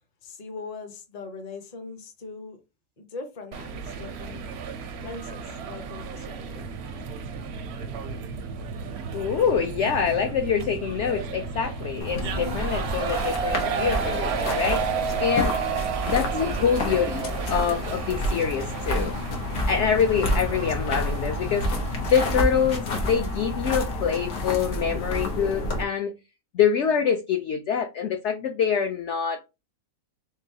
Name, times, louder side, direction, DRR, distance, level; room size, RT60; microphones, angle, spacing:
voice 1, 0.2-2.6 3.0-4.5 5.0-6.7, left 4 dB, 35° left, 0.7 m, -40 dB
sound 1, 3.5-22.4, right 6 dB, 65° right, 0.7 m, -33 dB
sound 2, 6.4-18.7, right 5 dB, 85° right, 1.1 m, -41 dB
voice 2, 9.1-15.6 16.0-19.1 19.6-21.7 22.0-26.1 26.5-29.4, left 7 dB, 65° left, 0.7 m, -25 dB
sound 3, 12.0-25.8, left 1 dB, 85° left, 1.6 m, -29 dB
3.8 x 3.8 x 2.7 m
omnidirectional pair, 1.6 m